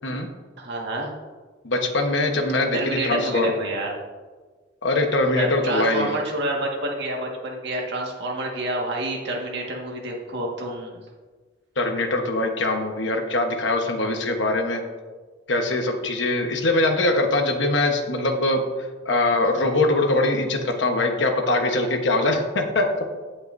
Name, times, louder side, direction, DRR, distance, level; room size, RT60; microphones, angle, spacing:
voice 1, 0.6-1.1 2.7-4.0 5.4-11.0, right 1 dB, 60° right, -1 dB, 1.7 m, -28 dB
voice 2, 1.6-3.5 4.8-6.1 11.8-14.8 15.5-18.6 19.0-22.9, left 2 dB, 65° left, 4 dB, 1.1 m, -22 dB
16.0 x 5.8 x 2.6 m, 1.4 s
head